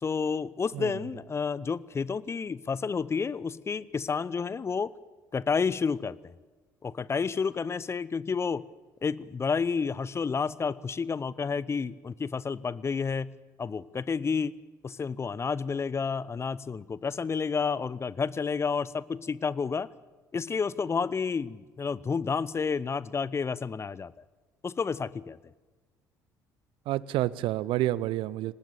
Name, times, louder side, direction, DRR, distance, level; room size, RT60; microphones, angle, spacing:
voice 1, 0.0-4.9 5.3-6.3 6.8-8.6 9.0-14.6 14.8-19.9 20.3-24.1 24.6-25.4, left 5 dB, 25° left, 20 dB, 0.7 m, -30 dB
voice 2, 26.9-28.5, right 15 dB, 55° right, 20 dB, 0.7 m, -29 dB
23.0 x 19.5 x 7.0 m, 1.3 s
figure-of-eight pair, 55°, 10 cm